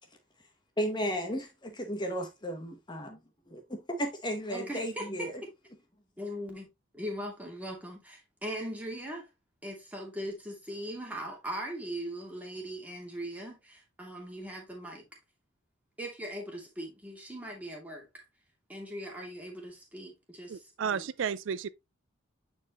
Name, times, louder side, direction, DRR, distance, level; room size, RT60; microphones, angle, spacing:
voice 1, 0.8-1.5 1.8-3.2 3.5-5.3, equal, 20° left, 1.0 m, -34 dB
voice 2, 4.5-5.3 6.2-6.7 6.9-9.3 9.6-15.0 16.0-18.2 18.7-21.1, equal, 5° right, 2.3 m, -40 dB
voice 3, 20.5-21.7, right 7 dB, 65° right, 0.4 m, -32 dB
9.1 x 4.5 x 3.0 m
head